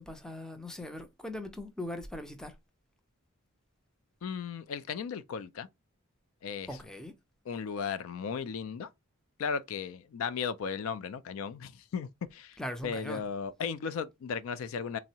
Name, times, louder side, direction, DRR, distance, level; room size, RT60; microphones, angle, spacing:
voice 1, 0.0-2.5 6.7-7.1 12.6-13.2, left 1 dB, 5° left, 0.4 m, -40 dB
voice 2, 4.2-5.7 6.4-6.7 7.5-8.9 9.4-12.6 12.8-15.0, left 6 dB, 70° left, 0.3 m, -36 dB
3.5 x 2.0 x 2.7 m
head